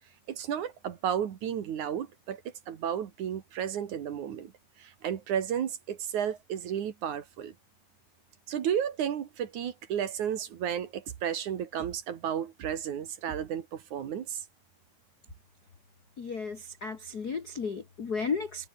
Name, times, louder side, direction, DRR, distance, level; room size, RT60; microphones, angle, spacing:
voice 1, 0.3-2.4 2.7-4.5 4.8-7.5 8.5-14.4, right 9 dB, 60° right, 2.8 m, -33 dB
voice 2, 16.2-18.7, left 5 dB, 50° left, 1.2 m, -34 dB
omnidirectional pair, 4.3 m